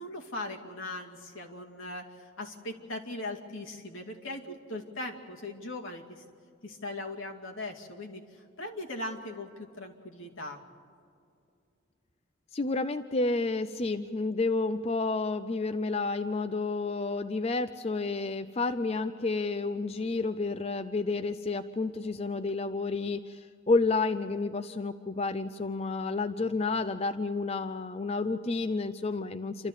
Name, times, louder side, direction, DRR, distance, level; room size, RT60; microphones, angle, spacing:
voice 1, 0.0-6.2 6.6-10.6, left 2 dB, 75° left, 0 dB, 2.4 m, -39 dB
voice 2, 12.5-29.7, left 3 dB, 30° left, 10 dB, 0.4 m, -30 dB
28.5 x 13.0 x 8.1 m, 2.5 s
head